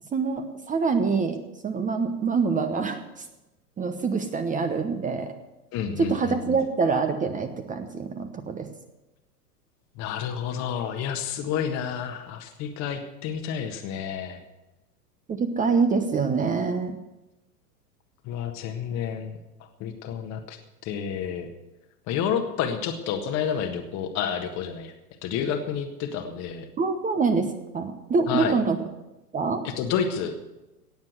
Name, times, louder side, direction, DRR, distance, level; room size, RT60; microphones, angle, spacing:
voice 1, 0.1-3.2 3.8-5.3 6.0-8.7 15.3-17.0 26.8-28.8 29.3-29.6, right 4 dB, 15° right, 7 dB, 1.0 m, -25 dB
voice 2, 5.7-6.6 10.0-14.4 18.2-19.4 19.8-21.5 22.1-24.9 25.2-26.7 28.3-28.6 29.6-30.3, left 8 dB, 35° left, 5 dB, 1.5 m, -30 dB
17.5 x 7.3 x 7.9 m, 1.0 s
figure-of-eight pair, 100°, 47 cm